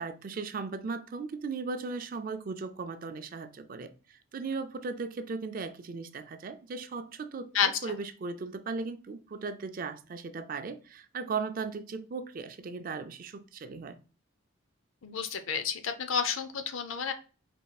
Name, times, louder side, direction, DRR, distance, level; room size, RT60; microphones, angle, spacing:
voice 1, 0.0-14.0, right 4 dB, 40° right, 0.3 m, -37 dB
voice 2, 15.0-17.1, left 7 dB, 70° left, 0.5 m, -30 dB
4.3 x 2.3 x 4.0 m
head